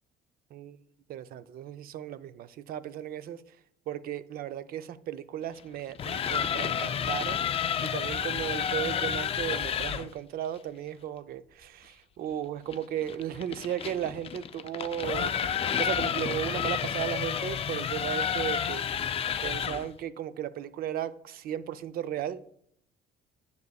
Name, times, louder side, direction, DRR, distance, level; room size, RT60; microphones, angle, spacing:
voice 1, 1.1-3.4 3.9-15.4 15.8-19.2 19.4-22.5, right 10 dB, 60° right, 0.5 m, -35 dB
sound 1, 5.8-10.1 12.7-19.9, left 8 dB, 35° left, 0.4 m, -30 dB
9.5 x 6.6 x 2.3 m
cardioid pair, 110°, 17 cm